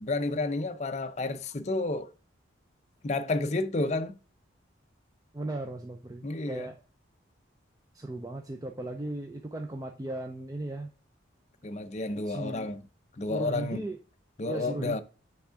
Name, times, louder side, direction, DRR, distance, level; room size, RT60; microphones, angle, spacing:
voice 1, 0.0-2.1 3.0-4.1 6.2-6.7 11.6-12.8 13.2-13.8 14.4-15.0, left 2 dB, 35° left, 0.5 m, -31 dB
voice 2, 5.3-6.8 7.9-10.9 12.2-12.7 13.2-14.0 14.5-15.0, right 1 dB, 20° right, 0.4 m, -37 dB
5.9 x 3.6 x 5.6 m
head